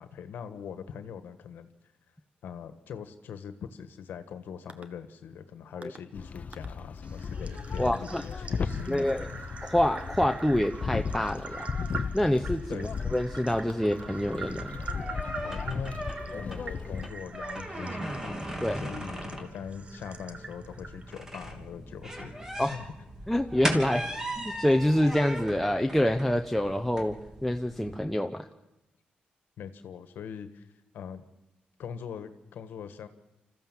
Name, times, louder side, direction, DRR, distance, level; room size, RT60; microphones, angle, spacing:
voice 1, 0.0-1.7 2.4-9.4 12.7-13.0 15.4-16.0 16.3-22.9 29.6-30.7 30.9-31.2 31.8-33.1, left 7 dB, 80° left, 10 dB, 1.5 m, -42 dB
sound 1, 4.7-4.8 5.8-6.0 6.5-6.7 7.0-21.2, right 4 dB, 40° right, 1.4 m, -44 dB
sound 2, 6.1-17.1, left 5 dB, 45° left, 0.9 m, -36 dB
voice 2, 7.8-8.2 8.9-9.3 9.6-11.7 12.1-14.8 18.6-18.8 22.6-22.8 23.3-24.1 24.4-27.2 27.4-28.5, left 1 dB, 5° left, 5 dB, 0.9 m, -26 dB
sound 3, 14.1-27.9, equal, 15° right, 3.0 m, -38 dB
25.5 x 14.5 x 7.4 m, 0.94 s
cardioid pair, 80°, 3 cm